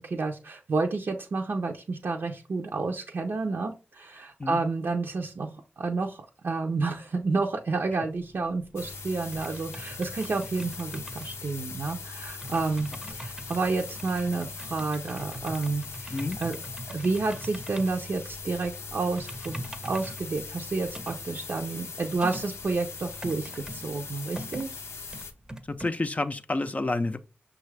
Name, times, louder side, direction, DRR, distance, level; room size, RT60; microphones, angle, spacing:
voice 1, 0.0-5.5 5.8-16.6 16.9-24.8, right 3 dB, 65° right, 0.5 m, -30 dB
sound 1, 8.1-25.9, right 1 dB, 15° right, 0.6 m, -44 dB
sound 2, 8.8-25.3, left 4 dB, 85° left, 0.6 m, -40 dB
voice 2, 25.7-27.2, left 2 dB, 35° left, 0.4 m, -29 dB
5.6 x 2.4 x 3.2 m
cardioid pair, 45°, 4 cm